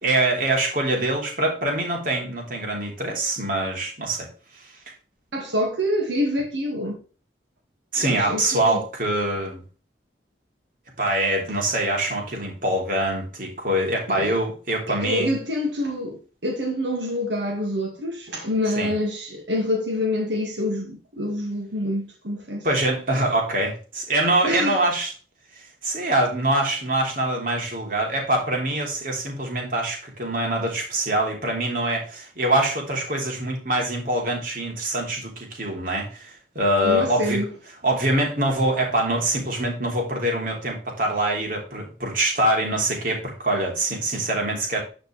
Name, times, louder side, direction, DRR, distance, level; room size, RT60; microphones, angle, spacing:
voice 1, 0.0-4.3 4.5-4.7 7.9-9.6 11.0-15.3 18.8-18.9 22.6-25.1 25.6-37.4 37.8-44.8, right 1 dB, 50° right, 3.3 m, -24 dB
voice 2, 5.3-7.0 8.0-8.8 14.1-14.4 15.0-22.7 24.4-24.8 36.8-37.5, left 1 dB, 80° right, 2.0 m, -26 dB
11.0 x 5.1 x 3.4 m
head